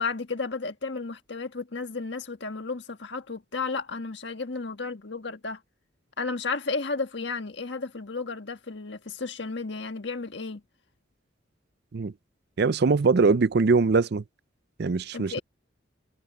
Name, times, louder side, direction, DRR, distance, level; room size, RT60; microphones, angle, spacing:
voice 1, 0.0-5.6 6.2-10.6 15.1-15.4, left 4 dB, 60° left, 1.7 m, -33 dB
voice 2, 12.6-14.2 14.8-15.4, right 4 dB, 55° right, 0.5 m, -22 dB
head